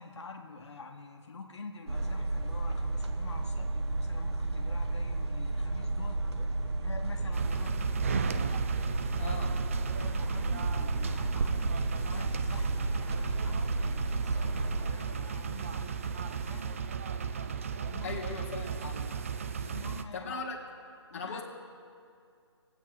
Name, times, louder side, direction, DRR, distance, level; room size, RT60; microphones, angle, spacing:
voice 1, 0.0-6.2 6.8-7.9 9.9-16.8 17.8-18.2 19.6-20.4 21.1-21.4, left 4 dB, 75° left, 3 dB, 1.2 m, -47 dB
sound 1, 1.9-14.9, right 2 dB, 65° right, 1.3 m, -32 dB
sound 2, 7.3-20.0, right 6 dB, 30° right, 0.4 m, -35 dB
voice 2, 9.2-9.6 18.0-19.1 20.1-20.6 21.1-21.4, left 4 dB, 30° left, -2 dB, 1.5 m, -38 dB
20.0 x 8.2 x 4.7 m, 2.3 s
hypercardioid pair, 165°, 15 cm